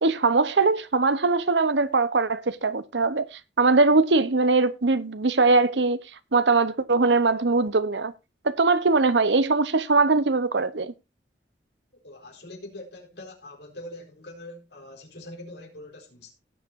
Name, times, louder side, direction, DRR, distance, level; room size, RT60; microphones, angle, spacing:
voice 1, 0.0-6.0 6.3-8.1 8.4-10.9, right 3 dB, 90° right, 0.9 m, -21 dB
voice 2, 11.9-16.3, left 1 dB, 75° left, 4.2 m, -43 dB
17.5 x 7.9 x 2.7 m
head